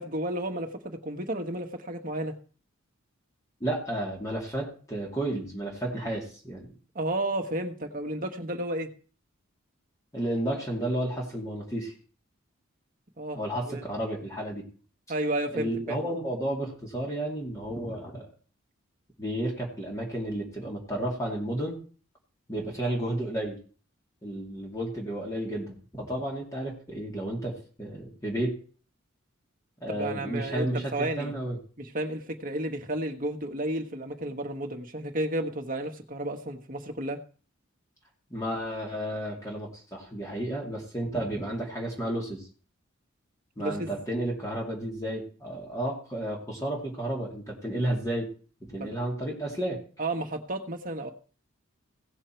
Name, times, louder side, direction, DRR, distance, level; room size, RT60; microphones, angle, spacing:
voice 1, 0.0-2.4 6.9-8.9 13.2-13.8 15.1-16.0 29.9-31.3 31.8-37.2 43.6-44.0 48.8-48.9 50.0-51.1, right 1 dB, 40° right, 4 dB, 1.3 m, -32 dB
voice 2, 3.6-6.7 10.1-11.9 13.3-14.7 15.5-18.3 19.2-21.8 22.5-23.6 24.2-28.6 29.8-31.6 38.3-42.5 43.6-48.3 48.6-49.8, right 1 dB, 15° left, -2 dB, 2.4 m, -32 dB
17.0 x 6.5 x 4.5 m, 0.40 s
head